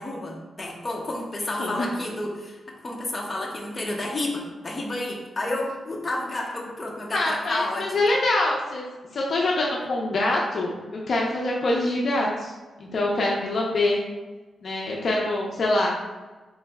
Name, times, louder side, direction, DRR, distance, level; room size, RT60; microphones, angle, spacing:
voice 1, 0.0-2.6 2.8-8.0, left 1 dB, 25° left, -2 dB, 0.8 m, -30 dB
voice 2, 7.1-8.8 9.1-12.5 12.8-14.0 14.6-15.9, left 2 dB, 50° left, -2 dB, 0.5 m, -24 dB
3.8 x 3.2 x 3.4 m, 1.2 s
wide cardioid pair, 140°, 0 cm